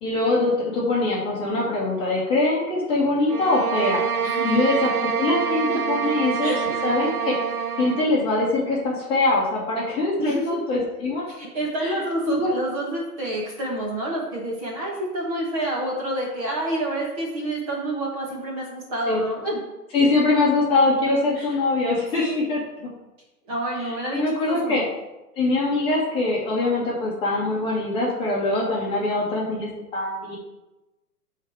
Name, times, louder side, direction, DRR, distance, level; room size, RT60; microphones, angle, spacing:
voice 1, 0.0-4.0 4.4-7.3 7.8-11.2 11.8-11.9 12.3-12.5 19.1-19.2 19.9-22.6 24.1-24.8 25.4-30.4, left 2 dB, 10° left, -6 dB, 1.6 m, -23 dB
sound 1, 3.3-8.1, right 7 dB, 65° right, 0.8 m, -26 dB
voice 2, 6.4-6.9 10.2-10.6 11.3-19.6 21.3-21.6 22.1-22.3 23.5-24.8, right 1 dB, 25° right, -3 dB, 1.4 m, -28 dB
12.0 x 4.1 x 4.6 m, 1.0 s
hypercardioid pair, 155°, 47 cm